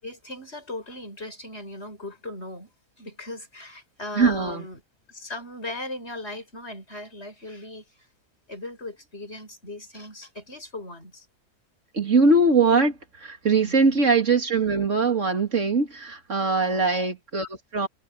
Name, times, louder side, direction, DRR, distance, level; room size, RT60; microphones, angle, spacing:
voice 1, 0.0-2.7 3.0-4.8 5.1-8.1 8.5-11.3 13.6-14.0 16.6-16.9, left 2 dB, 45° left, 7.1 m, -38 dB
voice 2, 4.1-4.6 11.9-17.9, right 3 dB, 60° right, 2.6 m, -21 dB
omnidirectional pair, 1.5 m